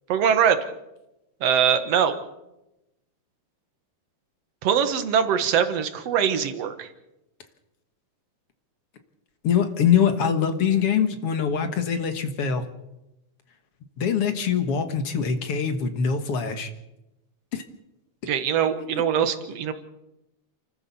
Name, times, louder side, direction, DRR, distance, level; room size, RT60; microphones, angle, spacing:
voice 1, 0.1-0.6 1.4-2.2 4.6-6.9 18.3-19.7, right 8 dB, 55° right, 9 dB, 2.4 m, -22 dB
voice 2, 9.4-12.6 14.0-16.7 17.5-17.6 18.9-19.0, left 7 dB, 55° left, 8 dB, 2.2 m, -23 dB
29.0 x 13.5 x 7.1 m, 0.93 s
omnidirectional pair, 3.6 m